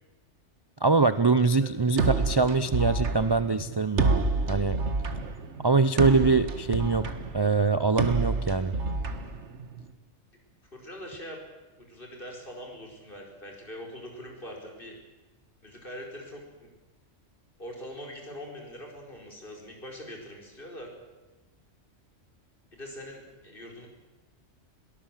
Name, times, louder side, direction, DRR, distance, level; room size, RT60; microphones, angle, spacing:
voice 1, 0.8-4.8 5.6-7.1 7.3-8.7, right 4 dB, 25° right, 12 dB, 0.6 m, -23 dB
sound 1, 2.0-9.9, right 3 dB, 70° right, 1.8 m, -29 dB
voice 2, 10.7-11.4 11.8-14.9 15.6-16.7 17.6-20.9 22.7-23.9, equal, 45° left, 1 dB, 5.2 m, -42 dB
22.0 x 18.5 x 7.5 m, 1.1 s
omnidirectional pair, 1.2 m